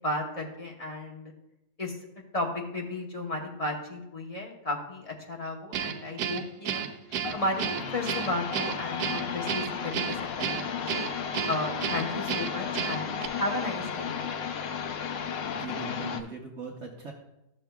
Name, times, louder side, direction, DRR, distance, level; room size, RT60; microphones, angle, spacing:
voice 1, 0.0-1.3 1.8-2.0 2.3-6.9 7.3-11.0 11.5-14.3, left 1 dB, 30° left, -1 dB, 0.8 m, -34 dB
Guitar, 5.7-13.3, right 8 dB, 75° right, 1.1 m, -33 dB
sound 1, 7.1-16.2, left 7 dB, 65° left, 0.6 m, -34 dB
voice 2, 15.5-17.1, right 4 dB, 55° right, 0 dB, 1.0 m, -40 dB
12.5 x 6.5 x 2.3 m, 0.90 s
omnidirectional pair, 1.7 m